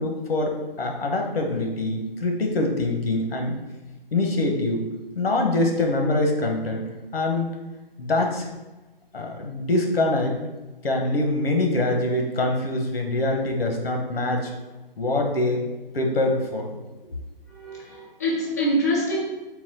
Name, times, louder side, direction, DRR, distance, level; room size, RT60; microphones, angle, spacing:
voice 1, 0.0-3.5 4.1-4.8 5.1-6.8 7.1-7.5 8.0-8.5 9.1-10.4 10.8-14.5 15.0-15.6 15.9-16.7, left 2 dB, 85° left, 2 dB, 1.0 m, -24 dB
voice 2, 17.5-19.2, equal, 20° left, -5 dB, 0.3 m, -25 dB
4.0 x 2.2 x 4.1 m, 1.1 s
hypercardioid pair, 150°, 29 cm